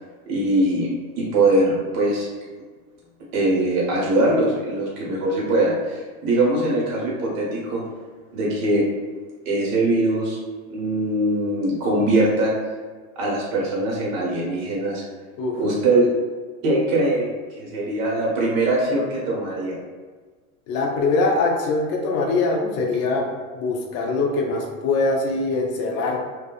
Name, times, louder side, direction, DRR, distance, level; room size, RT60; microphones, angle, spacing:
voice 1, 0.3-0.9 1.2-2.3 3.3-7.8 8.3-8.9 9.4-10.4 10.7-12.5 13.1-15.0 15.6-16.1 16.6-19.7, right 2 dB, 50° right, -4 dB, 1.2 m, -21 dB
voice 2, 20.7-23.3 23.5-26.2, left 3 dB, 35° left, 0 dB, 0.5 m, -22 dB
2.5 x 2.3 x 2.4 m, 1.4 s
hypercardioid pair, 105°, 42 cm